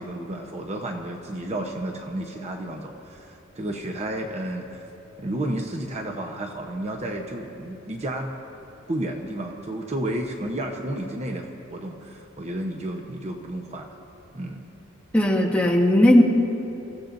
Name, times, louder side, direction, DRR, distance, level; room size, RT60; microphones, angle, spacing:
voice 1, 0.0-4.9 5.2-8.3 8.9-13.9 14.3-14.6, right 1 dB, 35° right, 1 dB, 0.9 m, -32 dB
voice 2, 15.1-16.2, left 1 dB, 5° left, -2 dB, 1.4 m, -17 dB
28.0 x 15.5 x 2.6 m, 3.0 s
head